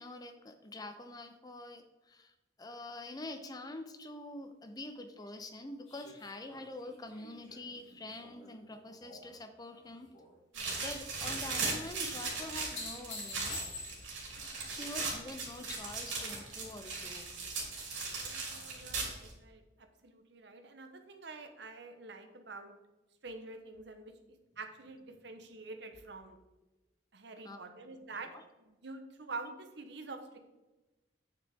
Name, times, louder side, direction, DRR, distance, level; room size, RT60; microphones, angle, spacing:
voice 1, 0.0-10.1 10.8-13.6 14.7-17.3 27.4-27.7 28.3-28.4, left 2 dB, 20° left, 7 dB, 0.6 m, -46 dB
Spent Revolver Catridges Hit Floor, 5.9-9.3 9.7-10.3 12.4-14.3 16.9-17.0, left 2 dB, 85° left, 2.7 m, -47 dB
sound 1, 10.5-19.3, right 4 dB, 80° right, 3.1 m, -38 dB
voice 2, 14.3-14.8 18.2-22.8 23.2-24.1 24.6-26.4 27.1-28.3 28.6-30.4, right 3 dB, 65° right, 7 dB, 1.0 m, -47 dB
9.0 x 7.0 x 3.6 m, 1.1 s
head